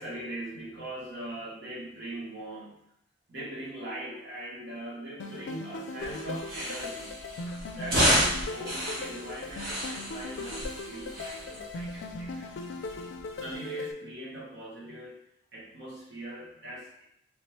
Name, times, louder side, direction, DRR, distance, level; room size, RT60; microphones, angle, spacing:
voice 1, 0.0-2.8 3.3-7.2 7.7-12.5 13.3-15.2 15.5-17.0, right 1 dB, 70° right, -6 dB, 1.1 m, -40 dB
sound 1, 5.2-13.9, left 2 dB, 80° left, 0.4 m, -39 dB
sound 2, 6.0-13.5, equal, 55° right, 1.5 m, -32 dB
3.5 x 3.1 x 2.9 m, 0.78 s
head